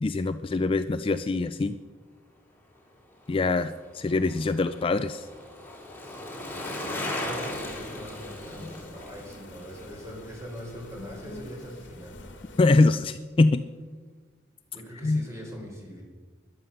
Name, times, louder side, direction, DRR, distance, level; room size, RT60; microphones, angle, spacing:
voice 1, 0.0-1.8 3.3-5.3 12.6-13.6 15.0-15.2, left 3 dB, 30° left, 11 dB, 0.4 m, -24 dB
Bicycle, 3.1-11.5 11.8-11.9, left 1 dB, 10° left, 2.8 m, -38 dB
voice 2, 7.2-12.3 14.7-16.0, equal, 15° right, 0 dB, 4.0 m, -41 dB
sound 1, 7.6-12.8, left 2 dB, 75° left, 1.4 m, -46 dB
13.5 x 11.0 x 6.7 m, 1.4 s
head